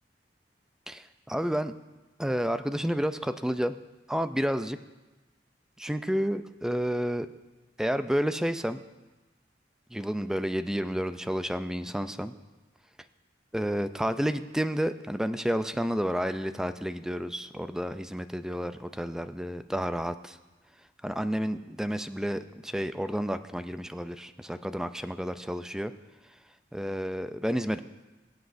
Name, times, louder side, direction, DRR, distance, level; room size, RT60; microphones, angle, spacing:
voice 1, 0.9-1.7 2.2-3.8 4.1-4.8 5.8-7.3 7.8-8.8 9.9-12.3 13.5-20.4 21.0-25.9 26.7-27.8, equal, 5° right, 11 dB, 0.3 m, -30 dB
22.0 x 8.0 x 2.6 m, 1.2 s
head